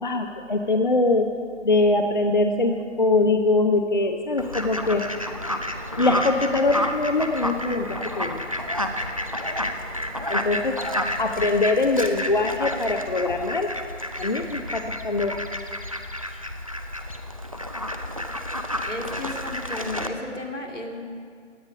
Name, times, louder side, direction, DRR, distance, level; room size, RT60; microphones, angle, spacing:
voice 1, 0.0-1.3 1.6-5.0 6.0-8.4 10.3-10.7 11.2-13.7 14.2-15.4, left 2 dB, 40° left, 5 dB, 0.6 m, -22 dB
Fowl, 4.4-20.1, left 1 dB, 30° right, 0.5 m, -30 dB
voice 2, 18.8-21.0, left 1 dB, 80° left, 1 dB, 2.4 m, -34 dB
16.5 x 9.9 x 5.3 m, 2.1 s
figure-of-eight pair, 155°, 37 cm